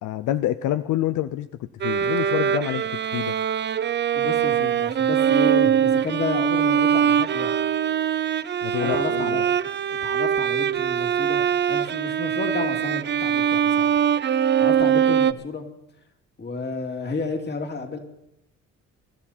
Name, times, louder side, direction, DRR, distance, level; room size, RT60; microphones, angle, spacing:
voice 1, 0.0-2.8 3.1-3.3 8.6-9.4, left 13 dB, 80° left, 12 dB, 0.6 m, -27 dB
Bowed string instrument, 1.8-15.3, right 8 dB, 35° right, 0.5 m, -22 dB
voice 2, 4.1-7.5 8.8-9.4 9.9-11.4 11.7-13.9 14.6-15.6 16.4-18.0, left 4 dB, 35° left, 4 dB, 2.5 m, -31 dB
24.0 x 12.5 x 4.3 m, 0.81 s
cardioid pair, 90°, 30 cm